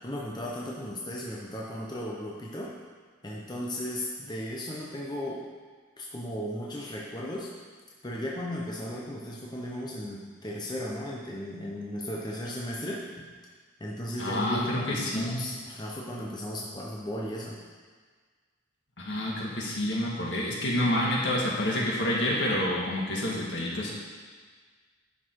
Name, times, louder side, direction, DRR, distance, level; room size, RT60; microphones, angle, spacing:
voice 1, 0.0-2.7 3.2-5.4 6.0-7.5 8.0-13.0 13.8-17.6, equal, 20° left, -4 dB, 1.0 m, -35 dB
voice 2, 14.2-15.4 19.0-23.9, left 1 dB, 70° left, -4 dB, 2.0 m, -28 dB
11.0 x 5.8 x 4.7 m, 1.5 s
head